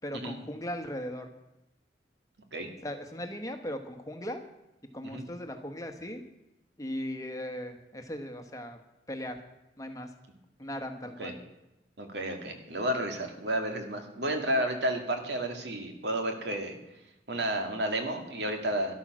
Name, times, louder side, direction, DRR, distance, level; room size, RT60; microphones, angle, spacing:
voice 1, 0.0-1.3 2.8-4.4 4.9-6.2 6.8-8.8 9.1-9.4 9.8-10.1 10.6-11.4, equal, 20° left, 6 dB, 1.2 m, -38 dB
voice 2, 12.0-16.8 17.3-18.9, right 1 dB, 70° right, 4 dB, 2.3 m, -31 dB
13.0 x 11.5 x 6.2 m, 0.92 s
head